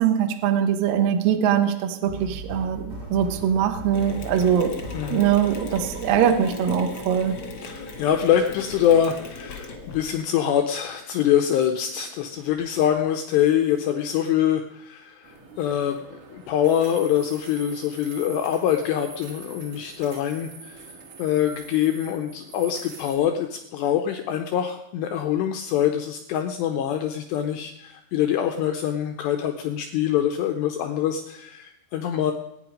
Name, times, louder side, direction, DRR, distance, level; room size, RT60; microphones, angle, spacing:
voice 1, 0.0-2.8 3.1-4.7 5.1-7.4, right 9 dB, 75° right, 6 dB, 2.0 m, -22 dB
sound 1, 2.1-7.2, right 1 dB, 35° right, 1.6 m, -39 dB
Mechanisms, 3.9-10.2, left 3 dB, 60° left, 1.4 m, -38 dB
voice 2, 4.9-5.2 7.6-20.8 21.2-32.3, left 10 dB, 85° left, 5 dB, 2.4 m, -24 dB
sound 2, 15.2-23.2, right 4 dB, 55° right, 2.5 m, -44 dB
21.0 x 9.4 x 5.1 m, 0.87 s
omnidirectional pair, 5.9 m